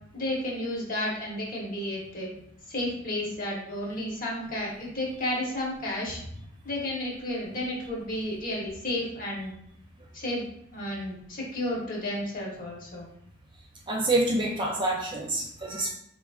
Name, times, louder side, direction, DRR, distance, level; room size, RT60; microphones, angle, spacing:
voice 1, 0.1-2.3 2.7-6.2 6.6-9.5 10.1-10.5 10.7-13.0, left 1 dB, 45° left, -3 dB, 1.0 m, -32 dB
voice 2, 13.9-15.9, right 2 dB, 25° right, -1 dB, 0.4 m, -27 dB
4.3 x 2.5 x 2.3 m, 0.69 s
head